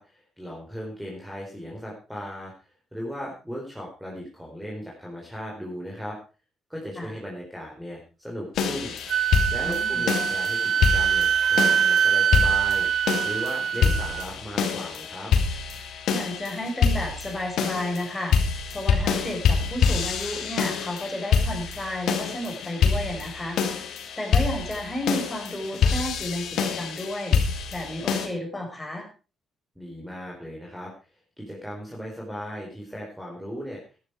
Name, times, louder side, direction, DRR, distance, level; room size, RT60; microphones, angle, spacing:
voice 1, 0.0-6.2 6.7-9.0 9.5-12.9 13.2-15.3 29.8-30.9 31.4-33.8, equal, ahead, -2 dB, 4.4 m, -37 dB
sound 1, 8.6-28.3, left 6 dB, 75° left, 2.7 m, -26 dB
Wind instrument woodwind instrument, 9.1-14.3, right 8 dB, 60° right, 0.8 m, -23 dB
voice 2, 9.6-10.0 16.1-18.4 18.7-23.6 24.2-27.4 27.7-29.1, left 1 dB, 15° left, 2 dB, 6.0 m, -32 dB
13.0 x 11.5 x 4.8 m, 0.34 s
cardioid pair, 90°, 0 cm